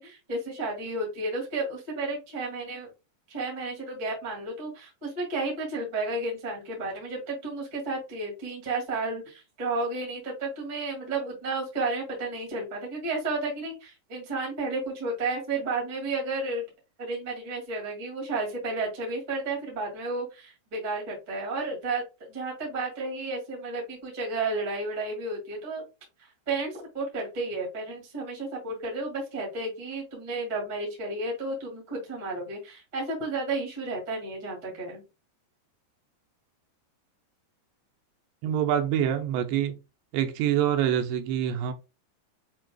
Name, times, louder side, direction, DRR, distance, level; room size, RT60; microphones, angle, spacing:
voice 1, 0.0-2.9 3.3-16.7 17.0-22.0 22.3-25.8 26.5-35.0, right 3 dB, 30° right, 0.8 m, -32 dB
voice 2, 38.4-39.7 40.1-41.7, right 10 dB, 80° right, 2.7 m, -25 dB
7.3 x 2.8 x 2.3 m
omnidirectional pair, 5.0 m